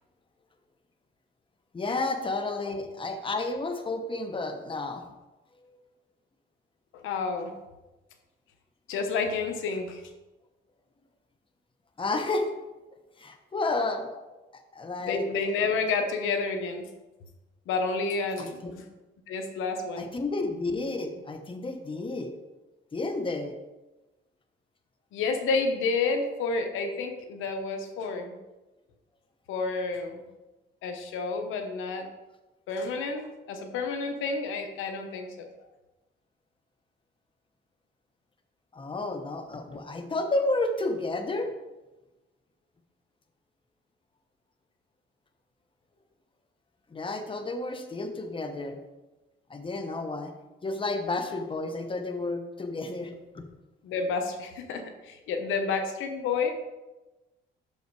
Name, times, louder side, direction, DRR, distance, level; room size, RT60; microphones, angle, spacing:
voice 1, 1.7-5.1 5.6-5.8 12.0-12.5 13.2-14.1 14.7-15.3 18.4-18.7 20.0-22.3 22.9-23.5 38.7-41.5 46.9-48.8 49.5-50.3 50.6-53.4, left 2 dB, 25° left, 6 dB, 1.0 m, -31 dB
voice 2, 6.9-7.6 8.9-10.0 15.0-16.8 17.7-18.8 19.3-20.1 25.1-28.3 29.5-30.2 30.8-32.1 32.7-33.2 33.5-35.5 53.8-56.5, left 4 dB, 90° left, 5 dB, 0.9 m, -30 dB
6.4 x 5.6 x 4.7 m, 1.1 s
cardioid pair, 90°, 20 cm